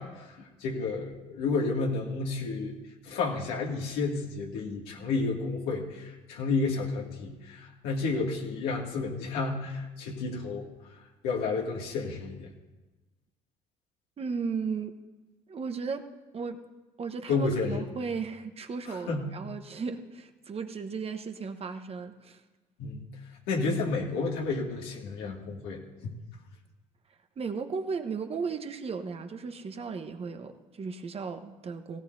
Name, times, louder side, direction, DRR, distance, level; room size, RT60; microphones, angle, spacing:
voice 1, 0.0-2.8 3.0-10.7 11.2-12.5 17.3-17.8 18.9-19.3 22.8-23.0 23.5-26.1, left 3 dB, 85° left, -1 dB, 2.4 m, -31 dB
voice 2, 14.2-15.0 15.5-16.6 17.0-22.4 27.4-32.0, right 5 dB, 40° right, 6 dB, 1.1 m, -35 dB
17.5 x 17.0 x 2.7 m, 1.2 s
supercardioid pair, 80°, 16 cm